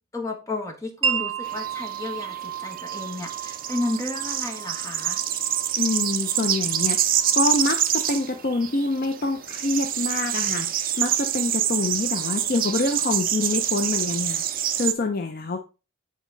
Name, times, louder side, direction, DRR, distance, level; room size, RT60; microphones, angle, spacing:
voice 1, 0.1-5.2, left 2 dB, 15° left, 1 dB, 1.4 m, -32 dB
Wind chime, 1.0-8.7, right 7 dB, 75° right, 0.8 m, -34 dB
sound 1, 1.5-14.9, right 10 dB, 45° right, 0.6 m, -26 dB
voice 2, 5.8-15.6, left 2 dB, 45° left, 6 dB, 0.6 m, -26 dB
8.3 x 4.2 x 3.9 m, 0.31 s
head